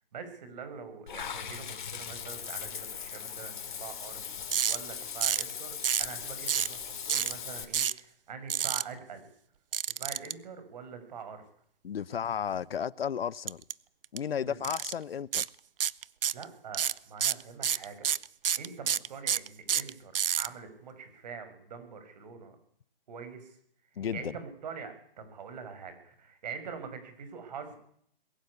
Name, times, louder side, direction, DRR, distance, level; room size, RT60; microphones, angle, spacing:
voice 1, 0.1-9.3 9.9-11.4 14.4-14.6 16.3-18.1 18.6-22.6 23.1-23.6 23.9-27.8, right 6 dB, 45° right, 6.1 m, -44 dB
Water / Bathtub (filling or washing), 1.1-7.6, left 7 dB, 55° left, 3.7 m, -39 dB
sound 1, 4.5-4.8 5.2-5.5 5.8-6.1 6.5-6.8 7.1-7.3 7.7-8.0 8.5-8.8 9.7-10.3 13.5-13.7 14.0-14.2 14.6-14.9 15.3-15.5 15.8-16.4 16.7-20.5, right 8 dB, 70° right, 0.9 m, -28 dB
voice 2, 11.8-13.6 14.1-15.5 24.0-24.3, left 8 dB, 80° left, 0.9 m, -33 dB
21.5 x 15.0 x 9.9 m
hypercardioid pair, 165°, 29 cm